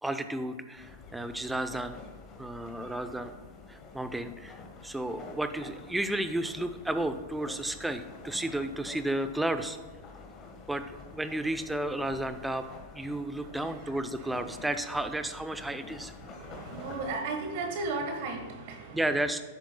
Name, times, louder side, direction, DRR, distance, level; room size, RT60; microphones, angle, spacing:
voice 1, 0.0-2.0 2.4-3.4 3.7-9.8 10.7-12.7 12.9-16.1 18.9-19.4, right 1 dB, 5° right, 9 dB, 0.6 m, -32 dB
sound 1, 0.7-17.1, left 4 dB, 35° left, 1.4 m, -48 dB
voice 2, 16.2-19.1, right 3 dB, 60° right, 3 dB, 1.3 m, -35 dB
10.5 x 8.1 x 2.2 m, 1.5 s
hypercardioid pair, 115°, 0 cm